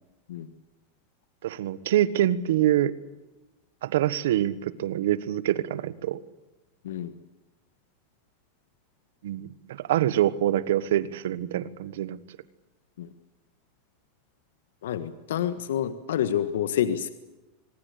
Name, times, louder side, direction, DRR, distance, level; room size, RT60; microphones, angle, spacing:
voice 1, 1.4-2.9 3.8-6.2 9.2-12.2, right 12 dB, 80° right, 17 dB, 1.4 m, -25 dB
voice 2, 14.8-17.1, left 10 dB, 85° left, 12 dB, 1.5 m, -28 dB
25.5 x 21.0 x 8.4 m, 1.1 s
supercardioid pair, 125°, 0 cm